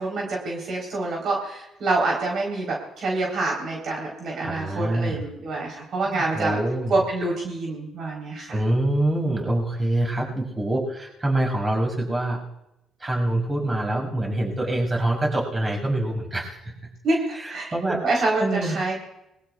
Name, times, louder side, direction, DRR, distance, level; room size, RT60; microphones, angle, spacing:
voice 1, 0.0-6.6 6.9-8.5 17.0-17.7 18.0-19.0, right 2 dB, 60° right, -2 dB, 3.8 m, -26 dB
voice 2, 4.4-5.2 6.0-7.0 8.5-12.4 13.0-16.7 17.4-18.0 18.4-18.8, right 1 dB, 20° right, 0 dB, 6.2 m, -25 dB
28.0 x 21.0 x 2.4 m, 0.90 s
cardioid pair, 110°, 0 cm